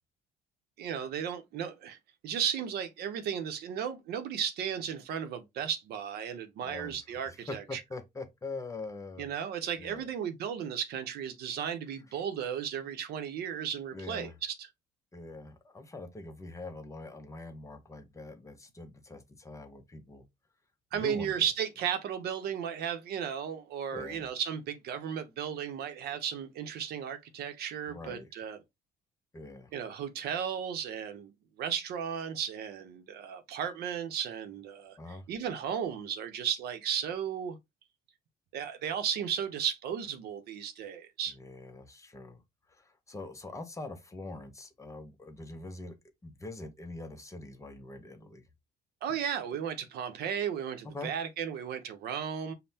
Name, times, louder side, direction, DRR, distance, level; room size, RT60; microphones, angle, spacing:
voice 1, 0.8-2.0 2.2-7.8 9.2-14.7 20.9-28.6 29.7-31.3 31.6-35.0 35.3-37.6 38.5-41.3 49.0-52.5, right 8 dB, 70° right, 0.7 m, -35 dB
voice 2, 6.6-9.3 9.8-10.1 13.9-14.4 15.1-20.2 20.9-21.5 23.9-24.3 27.9-28.3 29.3-29.7 35.0-35.2 41.3-42.4 42.7-46.0 46.2-48.4 50.8-51.1, left 2 dB, 20° left, 0.6 m, -43 dB
5.3 x 2.1 x 2.7 m
cardioid pair, 110°, 17 cm